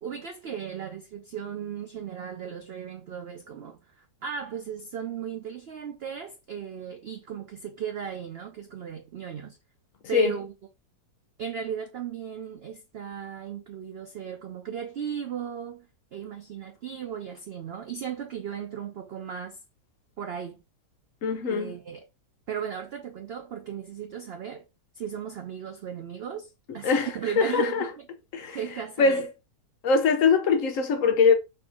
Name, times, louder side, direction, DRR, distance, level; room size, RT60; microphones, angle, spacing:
voice 1, 0.0-9.6 10.1-10.5 11.4-15.9 16.1-19.6 20.2-20.6 21.4-22.1 22.5-24.7 24.9-27.8 28.5-29.2, right 8 dB, 80° right, 0.5 m, -36 dB
voice 2, 21.2-21.7 26.8-27.1 27.4-27.9 28.3-28.6 29.0-29.3 29.8-31.4, left 5 dB, 65° left, 0.9 m, -22 dB
4.4 x 2.8 x 3.6 m
omnidirectional pair, 1.7 m